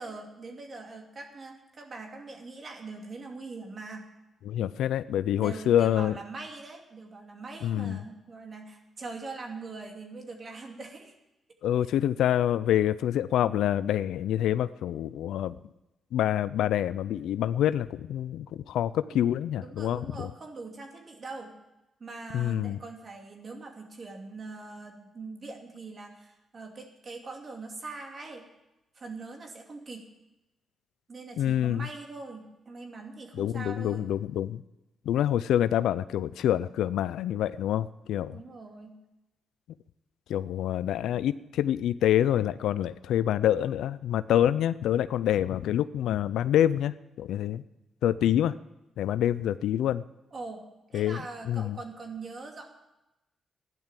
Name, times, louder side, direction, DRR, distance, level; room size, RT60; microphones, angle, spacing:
voice 1, 0.0-4.1 5.3-11.1 19.0-19.3 19.6-21.5 22.0-28.4 28.9-30.1 31.1-34.1 38.3-39.0 50.3-52.7, right 3 dB, 50° right, 2 dB, 2.7 m, -42 dB
voice 2, 4.5-6.1 7.6-8.0 11.6-15.6 16.1-20.3 22.3-22.8 31.4-31.9 33.4-34.6 35.1-38.4 40.3-47.6 48.0-48.5 49.0-50.0 50.9-51.2 51.5-51.8, left 11 dB, 80° left, 16 dB, 0.4 m, -26 dB
12.5 x 10.5 x 7.5 m, 0.95 s
supercardioid pair, 55°, 0 cm